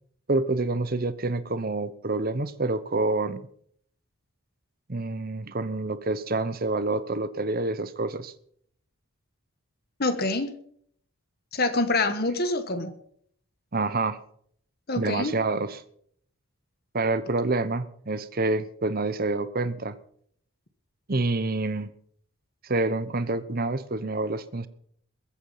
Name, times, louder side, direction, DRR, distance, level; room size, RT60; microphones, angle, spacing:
voice 1, 0.3-3.5 4.9-8.3 13.7-14.2 15.0-15.8 16.9-20.0 21.1-21.9 22.6-24.7, right 2 dB, 40° right, 13 dB, 0.9 m, -27 dB
voice 2, 10.0-10.5 11.5-12.9 14.9-15.3, left 2 dB, 45° left, 9 dB, 1.4 m, -26 dB
21.5 x 8.8 x 5.6 m, 0.64 s
head